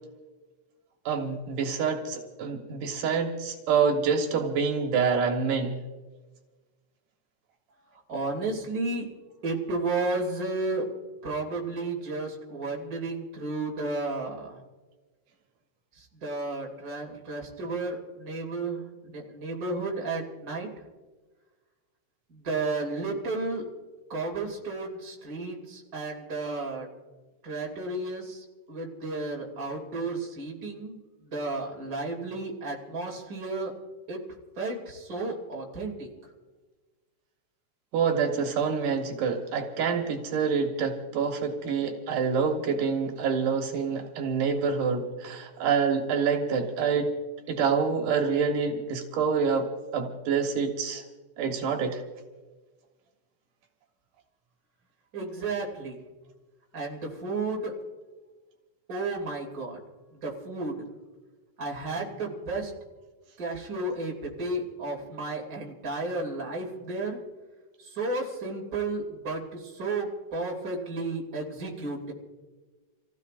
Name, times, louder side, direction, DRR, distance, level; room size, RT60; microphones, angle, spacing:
voice 1, 1.1-5.8 37.9-47.1 47.5-49.7 49.9-51.0 51.4-52.0, right 5 dB, 80° right, 3 dB, 2.9 m, -27 dB
voice 2, 8.1-9.1 9.4-10.9 11.2-14.5 16.2-20.7 22.3-23.6 24.1-26.9 27.4-31.0 31.2-33.7 34.1-34.2 34.6-36.1 55.1-56.0 56.7-57.7 58.9-59.8 60.2-60.9 61.6-62.7 63.4-67.2 67.9-72.1, right 3 dB, 30° right, -1 dB, 2.7 m, -32 dB
29.0 x 16.0 x 2.5 m, 1.3 s
omnidirectional pair, 3.7 m